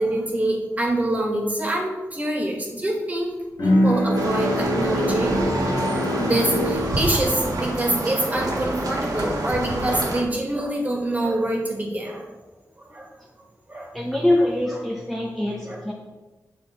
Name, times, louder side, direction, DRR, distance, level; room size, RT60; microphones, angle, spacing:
voice 1, 0.0-12.3 12.9-13.1 13.7-13.9 14.7-14.8 15.7-15.8, right 1 dB, 25° right, 0 dB, 1.9 m, -25 dB
Bowed string instrument, 3.6-9.0, left 1 dB, 65° left, 1.3 m, -26 dB
sound 1, 4.1-10.2, right 1 dB, 85° right, 1.7 m, -27 dB
voice 2, 13.9-15.9, left 1 dB, ahead, -2 dB, 0.9 m, -23 dB
9.4 x 6.3 x 4.5 m, 1.2 s
wide cardioid pair, 140°, 6 cm